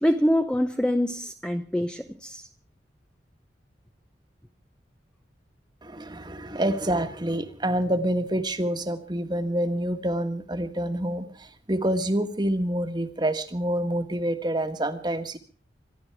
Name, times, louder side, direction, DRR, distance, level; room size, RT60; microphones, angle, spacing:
voice 1, 0.0-2.5 6.4-6.5, equal, 5° left, 0.7 m, -25 dB
voice 2, 5.8-15.4, right 1 dB, 25° right, 1.5 m, -27 dB
25.5 x 11.5 x 4.7 m
head